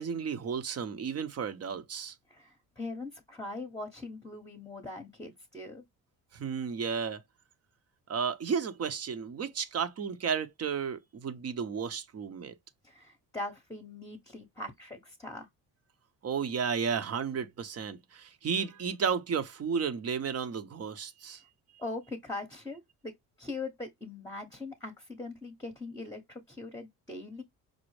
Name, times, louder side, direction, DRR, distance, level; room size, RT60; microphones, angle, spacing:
voice 1, 0.0-2.2 6.3-7.2 8.1-12.5 16.2-21.4, right 6 dB, 40° right, 0.7 m, -33 dB
voice 2, 2.3-5.8 12.8-15.5 21.8-23.1 23.4-27.4, left 2 dB, 10° left, 0.9 m, -41 dB
5.2 x 2.0 x 3.1 m
cardioid pair, 95°, 38 cm